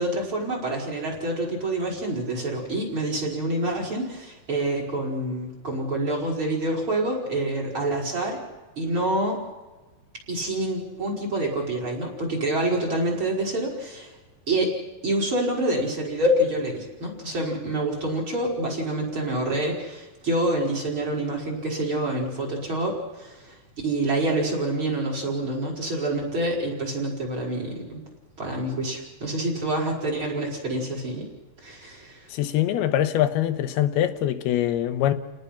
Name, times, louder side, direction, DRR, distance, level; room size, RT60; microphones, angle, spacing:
voice 1, 0.0-8.5 8.8-9.4 10.3-14.1 14.5-14.7 15.0-23.6 23.8-28.0 28.4-31.3 31.6-32.2, right 1 dB, 30° right, 5.5 m, -27 dB
voice 2, 32.3-35.1, left 12 dB, 85° left, 3.0 m, -23 dB
30.0 x 19.5 x 5.8 m
omnidirectional pair, 4.4 m